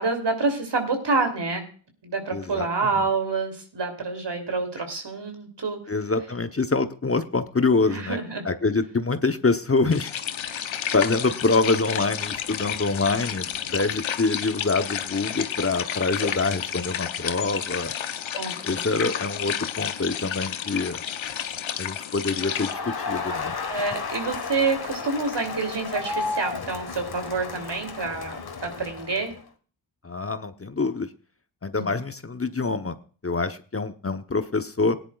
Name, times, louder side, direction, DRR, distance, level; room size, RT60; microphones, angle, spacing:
voice 1, 0.0-1.6 2.0-5.8 7.9-8.4 18.4-19.1 23.7-29.3 31.7-31.9, right 4 dB, 65° right, 5 dB, 3.1 m, -28 dB
voice 2, 2.3-2.7 2.9-3.0 5.9-8.2 8.4-10.1 10.9-17.9 18.6-21.0 21.8-23.6 30.0-31.1 31.6-33.0 33.2-35.0, left 3 dB, 30° left, 9 dB, 1.0 m, -25 dB
sound 1, 9.9-22.7, left 9 dB, 85° left, 0.9 m, -31 dB
Crowd, 22.4-29.4, left 4 dB, 55° left, 1.5 m, -33 dB
18.0 x 10.5 x 2.4 m, 0.40 s
cardioid pair, 45°, 46 cm